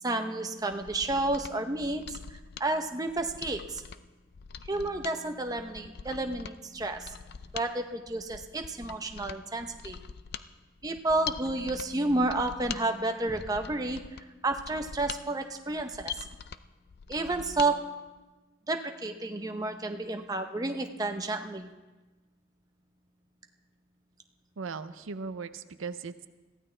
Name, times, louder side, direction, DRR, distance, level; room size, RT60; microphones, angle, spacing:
voice 1, 0.0-2.2 2.6-3.8 4.7-7.2 7.5-10.0 10.8-14.0 14.4-16.3 17.1-17.8 18.7-21.7, right 2 dB, 20° right, 5 dB, 0.7 m, -31 dB
Mechanisms, 0.6-17.7 18.1-18.2, left 7 dB, 50° left, 0.4 m, -44 dB
sound 1, 13.3-16.0, equal, ahead, 2.3 m, -55 dB
voice 2, 24.6-26.3, right 5 dB, 80° right, 12 dB, 0.6 m, -38 dB
21.5 x 15.0 x 3.3 m, 1.2 s
head